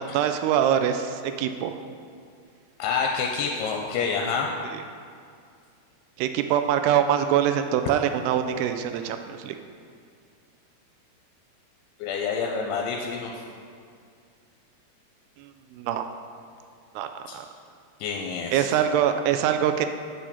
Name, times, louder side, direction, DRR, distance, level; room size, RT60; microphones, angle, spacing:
voice 1, 0.0-1.8 4.6-4.8 6.2-9.6 15.4-16.1 17.0-17.5 18.5-19.9, right 9 dB, 85° right, 7 dB, 2.5 m, -24 dB
voice 2, 2.8-4.5 12.0-13.3 17.3-17.4 18.0-18.7, left 5 dB, 85° left, 1 dB, 2.5 m, -28 dB
7.7 x 4.9 x 6.9 m, 2.3 s
omnidirectional pair, 4.7 m